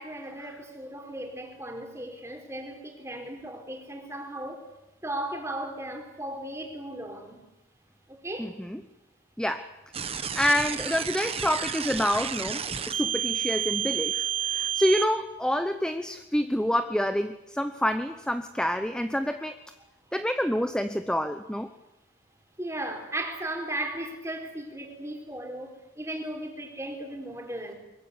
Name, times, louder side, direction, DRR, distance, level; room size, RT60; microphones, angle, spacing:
voice 1, 0.0-4.6 5.0-7.4 8.1-8.5 22.6-27.7, right 1 dB, 15° right, 4 dB, 4.2 m, -36 dB
voice 2, 8.4-8.8 9.4-9.7 10.1-19.6 20.1-21.7, equal, 5° left, 9 dB, 0.9 m, -28 dB
sound 1, 9.9-15.0, right 9 dB, 30° right, 1.5 m, -30 dB
23.5 x 22.5 x 9.6 m, 0.90 s
head